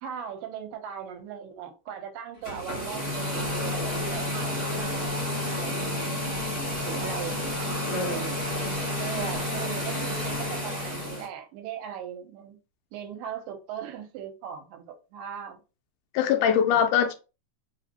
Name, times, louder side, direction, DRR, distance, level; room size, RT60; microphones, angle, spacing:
voice 1, 0.0-6.2 6.9-8.4 9.0-12.6 12.9-15.6 16.2-16.9, right 8 dB, 90° right, 2.4 m, -38 dB
sound 1, 2.4-11.3, left 1 dB, 15° right, 1.0 m, -30 dB
voice 2, 7.9-8.2 16.1-17.1, left 8 dB, 80° left, 2.0 m, -23 dB
5.2 x 2.8 x 2.8 m
omnidirectional pair, 3.7 m